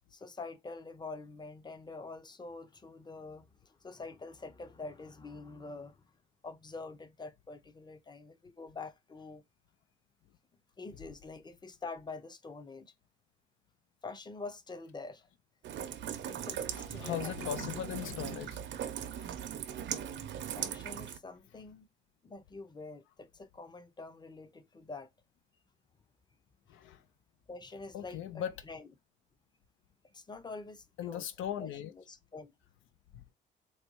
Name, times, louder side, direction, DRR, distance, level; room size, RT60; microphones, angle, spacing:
voice 1, 0.1-6.1 6.4-9.4 10.8-12.9 14.0-15.3 15.8-15.9 16.2-17.6 20.6-21.9 22.2-25.1 27.5-28.9 30.1-31.3 31.6-32.5, left 3 dB, 20° left, 0.6 m, -46 dB
Rain, 15.6-21.2, right 9 dB, 65° right, 0.6 m, -39 dB
voice 2, 16.7-18.6 19.2-19.3 26.7-27.0 27.9-28.5 31.0-31.9, left 10 dB, 85° left, 0.5 m, -38 dB
4.0 x 2.3 x 3.0 m
cardioid pair, 90°, 20 cm